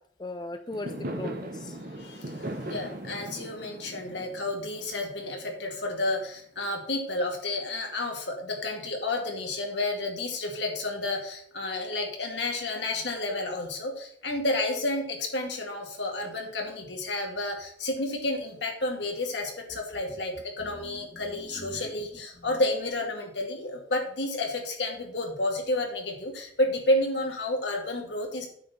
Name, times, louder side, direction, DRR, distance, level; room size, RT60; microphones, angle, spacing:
voice 1, 0.2-1.8 21.1-21.8, left 2 dB, 25° left, 7 dB, 0.5 m, -39 dB
Fireworks, 0.7-5.9, right 1 dB, 50° right, 1.1 m, -38 dB
voice 2, 1.8-28.5, left 2 dB, 75° left, 1 dB, 2.1 m, -31 dB
8.5 x 4.2 x 6.9 m, 0.64 s
head